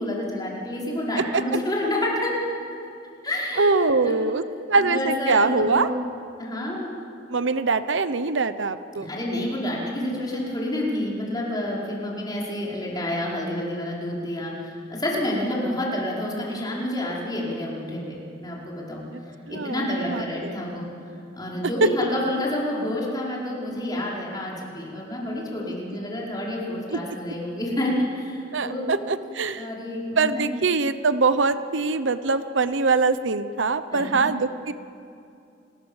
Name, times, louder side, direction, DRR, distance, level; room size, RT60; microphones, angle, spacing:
voice 1, 0.0-2.3 3.2-3.6 4.0-4.2 4.8-5.9 6.4-6.9 8.9-19.1 19.5-20.9 21.3-28.9 29.6-30.5 33.9-34.2, left 1 dB, 20° left, -4 dB, 5.3 m, -29 dB
voice 2, 3.6-5.9 7.3-9.1 19.1-19.2 19.5-20.5 21.8-21.9 26.9-27.0 28.5-29.7 30.2-34.7, right 4 dB, 80° right, 12 dB, 0.9 m, -23 dB
29.5 x 21.0 x 7.3 m, 2.6 s
head